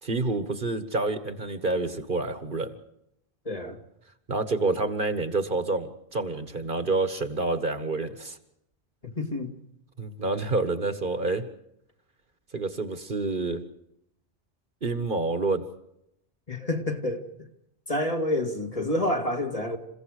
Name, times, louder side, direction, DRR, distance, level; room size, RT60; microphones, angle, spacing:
voice 1, 0.0-2.8 4.3-8.4 10.0-11.4 12.5-13.6 14.8-15.6, right 3 dB, 55° right, 1.7 m, -28 dB
voice 2, 3.5-3.8 9.0-9.5 16.5-17.3 17.9-19.8, left 1 dB, 35° left, 2.5 m, -28 dB
28.0 x 16.0 x 6.6 m
omnidirectional pair, 1.0 m